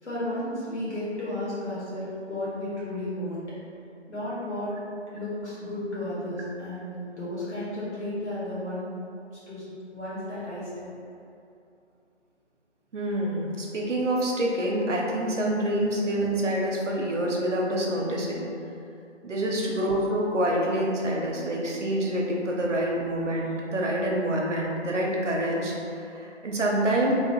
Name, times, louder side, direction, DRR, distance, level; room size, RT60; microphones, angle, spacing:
voice 1, 0.0-3.4 4.1-4.7 5.1-8.9 9.5-9.6 9.9-10.9 19.4-19.7, left 1 dB, 70° left, -10 dB, 1.5 m, -33 dB
voice 2, 12.9-18.5 19.2-27.1, right 1 dB, 80° right, -2 dB, 0.7 m, -27 dB
3.0 x 2.1 x 2.9 m, 2.5 s
figure-of-eight pair, 155°, 36 cm